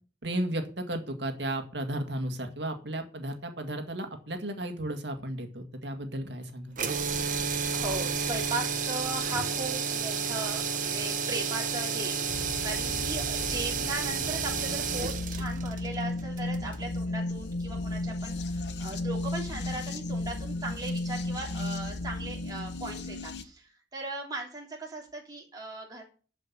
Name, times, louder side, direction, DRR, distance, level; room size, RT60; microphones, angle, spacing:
voice 1, 0.2-6.8, right 1 dB, 70° right, 6 dB, 1.9 m, -34 dB
sound 1, 6.7-16.9, right 6 dB, 45° right, 1.1 m, -31 dB
voice 2, 7.7-26.0, right 2 dB, 20° right, -2 dB, 3.2 m, -38 dB
sound 2, 12.3-23.4, left 2 dB, 70° left, 1.0 m, -34 dB
11.0 x 5.2 x 7.3 m, 0.38 s
head